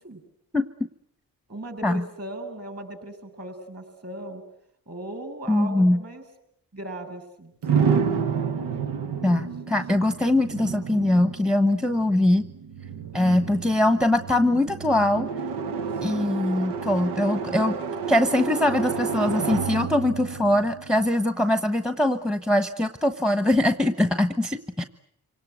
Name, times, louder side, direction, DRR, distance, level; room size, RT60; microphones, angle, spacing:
voice 1, 1.5-4.4 4.9-6.2 6.7-8.0 10.5-10.6 13.1-13.8 16.1-16.5, right 1 dB, 35° right, 7 dB, 6.9 m, -38 dB
voice 2, 5.5-6.0 9.2-12.5 13.1-15.3 16.0-17.8 18.1-24.8, left 1 dB, ahead, 10 dB, 1.1 m, -22 dB
sound 1, 7.6-21.5, right 6 dB, 80° right, 1.2 m, -30 dB
27.0 x 18.5 x 9.3 m, 0.74 s
cardioid pair, 55°, 40 cm